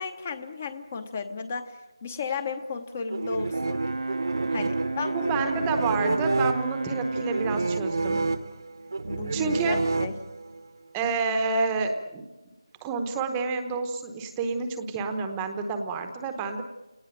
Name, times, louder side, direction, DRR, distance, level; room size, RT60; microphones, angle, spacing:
voice 1, 0.0-3.8 4.5-5.5 9.1-10.2, left 5 dB, 20° left, 11 dB, 0.8 m, -34 dB
sound 1, 3.1-10.6, right 3 dB, 45° right, 1.0 m, -29 dB
Brass instrument, 3.5-7.8, right 2 dB, 85° right, 1.1 m, -32 dB
voice 2, 5.1-8.2 9.3-9.8 10.9-12.3 12.8-16.6, right 4 dB, 10° right, 6 dB, 0.9 m, -29 dB
29.0 x 19.0 x 9.0 m, 1.2 s
figure-of-eight pair, 175°, 3 cm